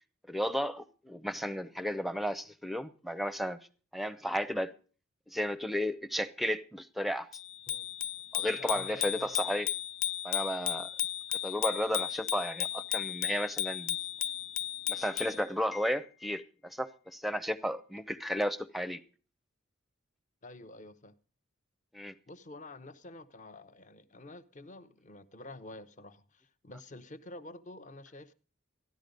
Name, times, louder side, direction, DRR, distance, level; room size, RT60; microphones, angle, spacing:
voice 1, 0.3-3.6 3.9-4.7 5.3-7.3 8.3-9.7 10.2-10.9 11.4-14.0 14.9-19.0 21.9-22.1, equal, ahead, 0.6 m, -33 dB
Bicycle bell, 7.3-15.4, left 12 dB, 65° left, 0.5 m, -35 dB
voice 2, 8.5-9.4 20.4-21.1 22.3-28.3, left 2 dB, 35° left, 0.8 m, -49 dB
14.0 x 11.0 x 5.2 m
head